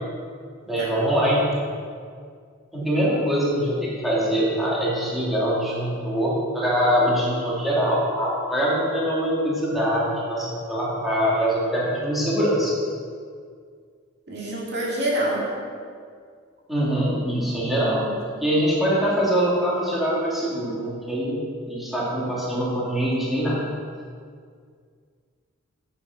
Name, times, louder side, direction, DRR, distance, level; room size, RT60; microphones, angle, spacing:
voice 1, 0.6-1.6 2.7-12.7 16.7-18.0 18.4-23.7, equal, ahead, -8 dB, 2.7 m, -23 dB
voice 2, 14.3-15.5 17.8-18.5, right 1 dB, 55° right, -4 dB, 2.3 m, -27 dB
9.0 x 8.8 x 6.0 m, 2.1 s
head